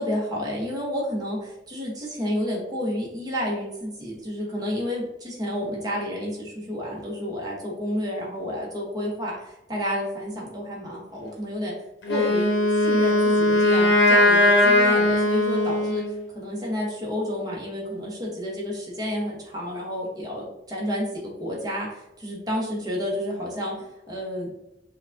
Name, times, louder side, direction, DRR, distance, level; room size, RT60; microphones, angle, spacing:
voice 1, 0.0-11.7 12.1-12.5 12.8-16.0 16.3-24.6, equal, 20° right, -3 dB, 0.9 m, -30 dB
Wind instrument woodwind instrument, 12.0-16.2, left 1 dB, 80° left, 0.7 m, -19 dB
4.8 x 2.2 x 2.6 m, 0.90 s
head